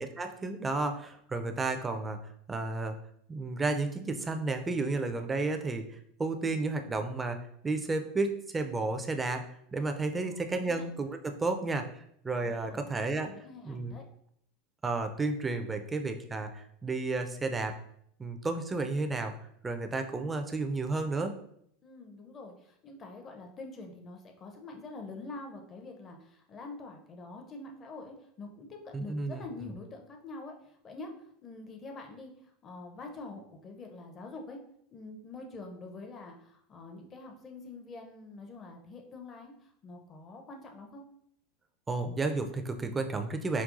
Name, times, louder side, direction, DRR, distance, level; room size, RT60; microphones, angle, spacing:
voice 1, 0.0-2.2 2.5-3.0 3.3-7.4 7.6-9.4 9.7-11.9 12.2-13.3 13.7-13.9 14.8-17.8 18.2-19.3 19.6-21.4 28.9-29.4 41.9-43.6, right 3 dB, 15° right, 6 dB, 0.5 m, -32 dB
voice 2, 10.2-10.9 12.4-14.0 21.8-34.6 34.9-41.0, left 3 dB, 35° left, 3 dB, 0.6 m, -46 dB
5.3 x 2.3 x 2.5 m, 0.71 s
figure-of-eight pair, 80°, 0 cm